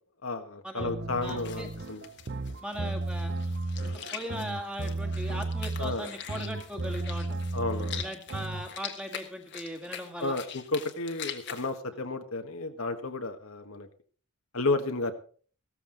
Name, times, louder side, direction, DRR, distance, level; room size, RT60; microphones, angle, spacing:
voice 1, 0.2-2.0 5.8-6.1 7.5-8.0 10.2-13.9 14.5-15.1, left 3 dB, 70° left, 6 dB, 1.5 m, -32 dB
sound 1, 0.8-8.7, right 2 dB, 45° right, 0.7 m, -34 dB
sound 2, 1.2-11.7, left 8 dB, 50° left, 1.5 m, -43 dB
voice 2, 1.2-1.7 2.6-3.3 3.8-7.3 8.0-10.4, equal, 5° right, 4 dB, 1.9 m, -39 dB
15.5 x 13.5 x 3.9 m, 0.43 s
head